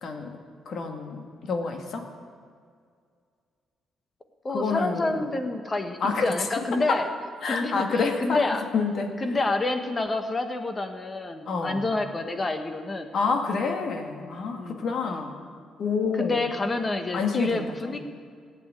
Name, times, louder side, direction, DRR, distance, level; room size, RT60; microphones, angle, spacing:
voice 1, 0.0-0.4 0.6-2.1 4.5-5.2 6.0-7.1 7.4-9.2 11.5-11.8 13.1-15.3 15.8-16.4 17.1-17.6, left 4 dB, 60° left, 4 dB, 1.8 m, -28 dB
voice 2, 4.4-7.1 7.4-8.6 9.2-13.1 14.5-14.8 16.2-18.0, left 2 dB, 30° left, 7 dB, 1.4 m, -28 dB
15.5 x 9.1 x 9.1 m, 2.1 s
cardioid pair, 90°, 0 cm